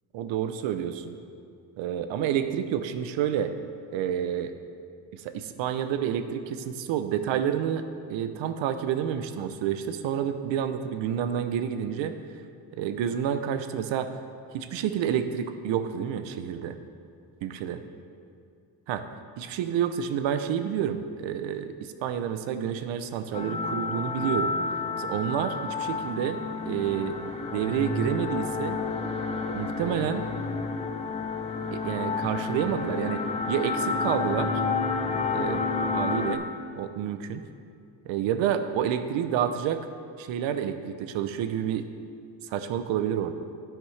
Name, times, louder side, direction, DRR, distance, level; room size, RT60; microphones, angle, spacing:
voice 1, 0.1-1.2 1.8-3.5 3.9-4.5 5.1-7.8 8.1-12.1 12.7-14.1 14.5-16.8 17.4-17.8 18.9-19.0 19.4-24.5 25.0-27.2 27.5-28.8 29.5-30.3 31.7-34.5 35.3-36.4 36.7-37.4 38.1-39.8 40.2-41.9 42.4-43.3, right 9 dB, 75° right, 10 dB, 0.7 m, -29 dB
sound 1, 23.3-36.4, left 4 dB, 15° left, 0.3 m, -30 dB
10.0 x 9.0 x 3.2 m, 2.4 s
cardioid pair, 140°, 45 cm